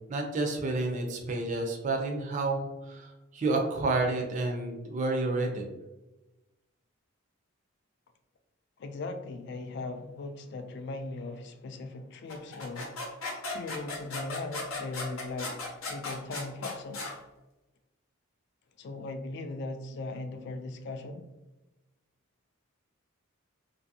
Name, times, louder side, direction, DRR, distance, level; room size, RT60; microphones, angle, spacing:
voice 1, 0.0-5.7, right 2 dB, 35° right, 0.4 m, -30 dB
voice 2, 8.8-13.1 13.5-15.6 15.9-17.1 18.8-21.3, left 2 dB, 55° left, 0.3 m, -39 dB
sound 1, 12.3-17.1, left 3 dB, 80° left, 0.7 m, -37 dB
2.6 x 2.6 x 2.6 m
head